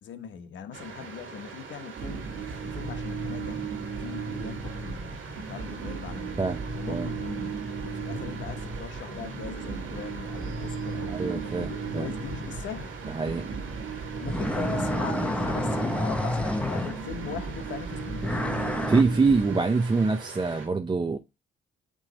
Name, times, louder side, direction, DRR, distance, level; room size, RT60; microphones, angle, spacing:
voice 1, 0.0-2.2 2.6-3.7 4.0-6.5 6.7-12.9 14.2-18.3, left 8 dB, 70° left, 1.2 m, -40 dB
sound 1, 0.7-20.7, right 5 dB, 85° right, 2.6 m, -43 dB
sound 2, 1.9-19.6, right 4 dB, 65° right, 1.8 m, -35 dB
voice 2, 6.4-7.1 11.1-12.1 13.1-13.4 18.9-21.2, right 4 dB, 20° right, 0.7 m, -25 dB
sound 3, 14.3-17.3 18.2-19.0, left 1 dB, 5° left, 0.9 m, -29 dB
9.0 x 3.2 x 4.0 m
cardioid pair, 90°, 20 cm